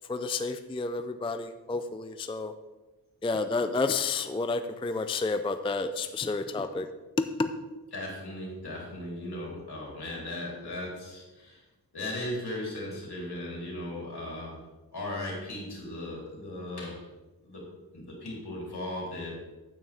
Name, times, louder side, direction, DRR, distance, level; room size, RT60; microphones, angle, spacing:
voice 1, 0.1-2.5 3.2-6.9 7.2-7.5, left 3 dB, 15° left, 9 dB, 0.4 m, -30 dB
voice 2, 7.9-11.6 11.9-14.6 14.9-17.0 17.4-17.6 17.9-19.3, left 1 dB, 65° left, -3 dB, 3.5 m, -37 dB
9.0 x 8.9 x 3.5 m, 1.1 s
wide cardioid pair, 90°, 42 cm